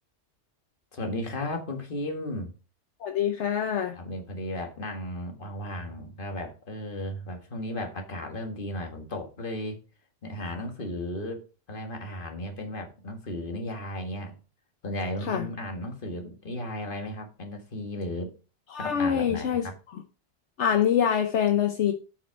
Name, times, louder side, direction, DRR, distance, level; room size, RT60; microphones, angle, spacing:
voice 1, 0.9-2.5 3.9-9.8 10.2-11.4 11.7-14.4 14.8-18.3 18.8-19.7, left 1 dB, 45° left, 4 dB, 1.7 m, -35 dB
voice 2, 3.0-3.9 15.3-15.5 18.7-19.6 20.6-21.9, left 8 dB, 75° left, 5 dB, 1.1 m, -25 dB
8.7 x 5.6 x 4.6 m, 0.35 s
omnidirectional pair, 1.2 m